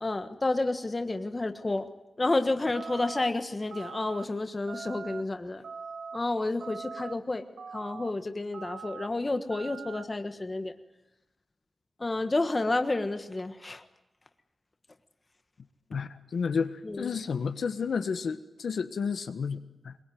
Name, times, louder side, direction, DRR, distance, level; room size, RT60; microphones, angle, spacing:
voice 1, 0.0-1.9 2.2-5.6 6.1-7.4 7.7-10.7 12.0-13.9 16.8-17.2, left 2 dB, 20° left, 8 dB, 1.4 m, -30 dB
sound 1, 2.7-3.3 3.7-4.2 4.7-5.2 5.6-6.2 6.6-7.1 7.6-8.1 8.5-9.1 9.5-10.0, right 5 dB, 85° right, 1.4 m, -41 dB
voice 2, 15.9-19.9, left 5 dB, 75° left, 9 dB, 1.4 m, -31 dB
23.0 x 22.0 x 9.4 m, 0.94 s
wide cardioid pair, 180°, 0 cm